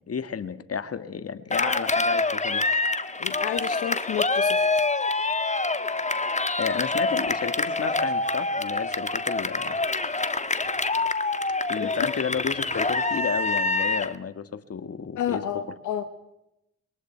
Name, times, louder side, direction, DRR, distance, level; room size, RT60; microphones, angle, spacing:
voice 1, 0.1-2.6 6.6-9.8 11.7-15.4, left 6 dB, 50° left, 10 dB, 1.9 m, -32 dB
Cheering, 1.5-14.2, left 3 dB, 25° left, 1.6 m, -26 dB
voice 2, 3.2-4.7 11.8-12.1 15.2-16.0, left 10 dB, 80° left, 8 dB, 1.3 m, -30 dB
26.5 x 23.5 x 4.6 m, 0.85 s
hypercardioid pair, 40°, 30 cm